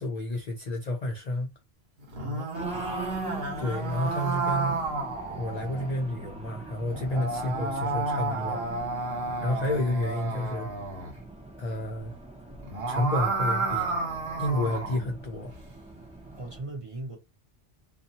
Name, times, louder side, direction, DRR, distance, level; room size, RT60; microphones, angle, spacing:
voice 1, 0.0-1.5 3.6-4.8 5.3-8.6 9.3-10.7 11.6-12.1 12.9-14.0 14.4-15.5, left 1 dB, 55° left, 0.4 m, -30 dB
sound 1, 2.0-5.9 6.9-11.1 12.5-15.0, right 3 dB, 55° right, 1.3 m, -31 dB
voice 2, 2.2-3.0 16.3-17.2, right 2 dB, 35° right, 0.7 m, -39 dB
Race car auto racing, 2.5-16.6, right 3 dB, 10° right, 0.4 m, -42 dB
2.6 x 2.3 x 2.7 m
omnidirectional pair, 1.3 m